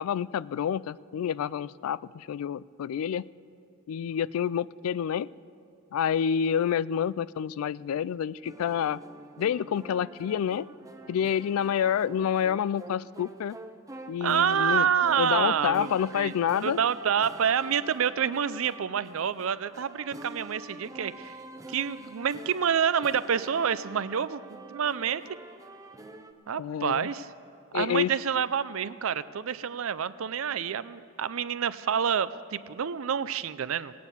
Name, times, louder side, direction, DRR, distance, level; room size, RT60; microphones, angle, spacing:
voice 1, 0.0-3.3 3.9-5.3 5.9-9.0 9.4-10.7 11.1-13.6 14.1-14.9 15.2-16.8 26.6-27.1 27.7-28.1, left 8 dB, 85° left, 21 dB, 0.3 m, -28 dB
sound 1, 8.4-26.3, right 2 dB, 15° right, 0.6 m, -46 dB
voice 2, 14.2-16.3 16.6-21.4 21.7-24.4 24.7-25.4 26.5-27.3 27.7-33.9, right 7 dB, 70° right, 15 dB, 0.5 m, -28 dB
18.0 x 9.5 x 6.9 m, 2.6 s
head